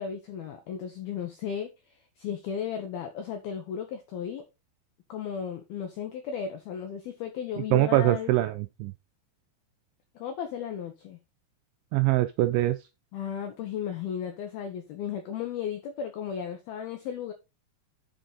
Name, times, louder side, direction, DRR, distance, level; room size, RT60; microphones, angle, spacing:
voice 1, 0.0-4.4 5.1-8.3 10.2-11.2 13.1-17.3, left 8 dB, 85° left, 2.2 m, -35 dB
voice 2, 7.7-8.9 11.9-12.8, right 16 dB, 85° right, 2.7 m, -23 dB
7.9 x 6.4 x 3.9 m
omnidirectional pair, 5.9 m